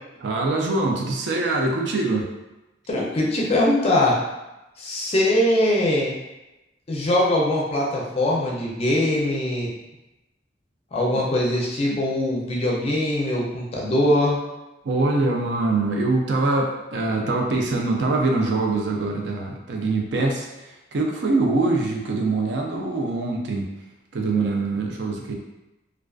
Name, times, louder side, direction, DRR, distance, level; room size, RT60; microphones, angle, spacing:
voice 1, 0.2-2.3 11.1-11.2 14.8-23.7 24.1-25.3, right 3 dB, 70° right, 0 dB, 0.4 m, -23 dB
voice 2, 2.9-4.2 4.8-6.2 6.9-9.7 10.9-14.4, left 1 dB, 35° left, -3 dB, 0.4 m, -22 dB
2.4 x 2.3 x 2.3 m, 1.0 s
head